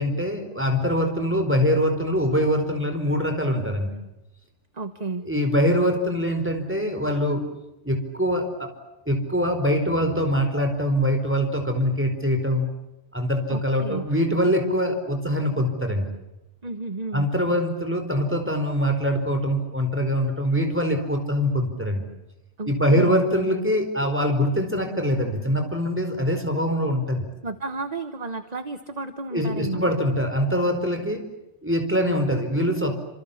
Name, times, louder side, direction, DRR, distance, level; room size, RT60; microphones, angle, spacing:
voice 1, 0.0-4.0 5.2-7.4 7.8-8.7 9.1-12.7 13.1-16.1 17.1-22.1 22.7-27.3 29.3-31.2 31.6-32.9, equal, 10° right, 6 dB, 4.7 m, -23 dB
voice 2, 4.7-5.2 13.5-14.1 16.6-17.3 22.6-23.2 27.4-29.8, right 3 dB, 35° right, 10 dB, 1.3 m, -32 dB
28.5 x 27.0 x 7.3 m, 0.96 s
omnidirectional pair, 1.2 m